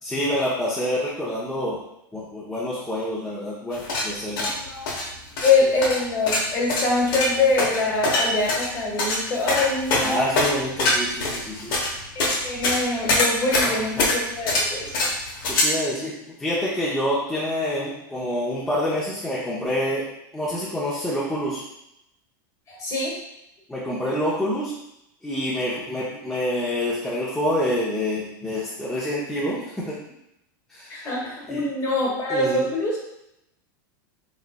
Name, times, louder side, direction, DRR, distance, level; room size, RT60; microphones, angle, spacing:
voice 1, 0.0-1.8 2.1-4.5 10.0-11.7 13.6-14.0 15.5-16.1 16.4-20.1 20.3-21.6 23.7-24.7 25.2-30.0 30.7-31.1 31.5-31.6 32.3-32.7, left 1 dB, 5° left, -9 dB, 0.7 m, -27 dB
sound 1, 3.7-15.6, left 2 dB, 75° left, 1.0 m, -24 dB
voice 2, 4.5-4.9 5.4-10.3 12.1-14.9 22.7-23.1 30.9-33.0, left 3 dB, 30° left, -3 dB, 1.1 m, -24 dB
3.7 x 3.1 x 2.2 m, 0.82 s
supercardioid pair, 140°, 11 cm